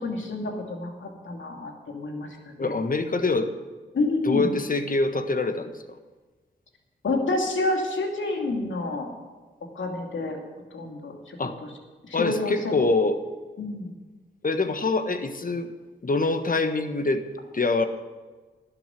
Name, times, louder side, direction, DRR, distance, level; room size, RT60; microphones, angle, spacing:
voice 1, 0.0-2.3 2.6-2.7 3.9-4.5 7.0-9.1 9.7-10.4 10.7-11.4 12.0-12.7 13.6-14.0, left 2 dB, 70° left, 2 dB, 2.7 m, -28 dB
voice 2, 2.6-3.5 4.2-5.8 11.4-11.6 12.1-13.2 14.4-15.7 16.0-17.2 17.5-17.9, left 3 dB, 40° left, 9 dB, 1.4 m, -25 dB
12.0 x 8.0 x 9.3 m, 1.3 s
supercardioid pair, 40°, 21 cm